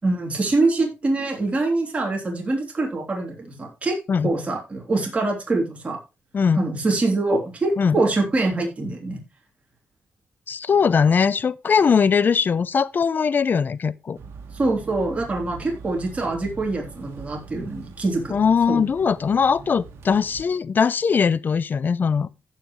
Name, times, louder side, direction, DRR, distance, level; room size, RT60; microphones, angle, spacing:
voice 1, 0.0-4.0 4.2-6.0 6.5-9.2 14.5-18.4 18.7-18.8, right 2 dB, 30° right, 3.2 m, -24 dB
voice 2, 6.3-6.6 7.8-8.0 10.5-14.2 18.3-22.3, left 6 dB, 45° left, 0.5 m, -20 dB
sound 1, 14.1-20.5, right 5 dB, 85° right, 1.7 m, -42 dB
15.5 x 5.7 x 3.1 m
cardioid pair, 85°, 4 cm